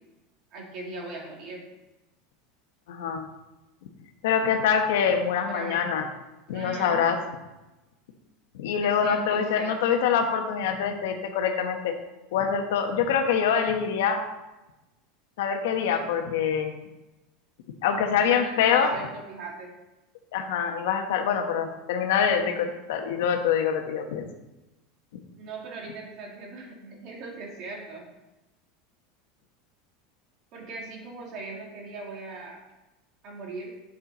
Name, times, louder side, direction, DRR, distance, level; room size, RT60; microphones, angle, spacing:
voice 1, 0.5-1.6 5.4-5.8 6.5-7.0 8.8-9.7 18.3-19.7 25.4-28.1 30.5-32.6 33.2-33.7, right 3 dB, 40° right, -1 dB, 2.3 m, -39 dB
voice 2, 2.9-3.3 4.2-6.1 6.5-7.2 8.5-11.9 12.3-14.2 15.4-16.7 17.8-18.9 20.3-24.2, left 7 dB, 80° left, 5 dB, 1.2 m, -25 dB
8.6 x 6.7 x 4.2 m, 1.0 s
supercardioid pair, 165°, 0 cm